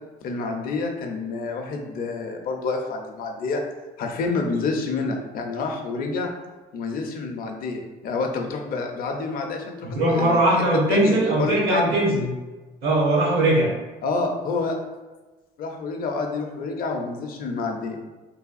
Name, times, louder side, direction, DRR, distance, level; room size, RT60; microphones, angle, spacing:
voice 1, 0.2-3.6 4.0-6.3 6.7-10.4 10.9-12.0 14.0-14.8 15.6-18.0, left 3 dB, 60° left, 3 dB, 0.5 m, -28 dB
voice 2, 9.9-12.3 12.8-13.7, right 1 dB, 70° right, -4 dB, 1.1 m, -20 dB
3.3 x 2.2 x 2.4 m, 1.2 s
cardioid pair, 110°, 17 cm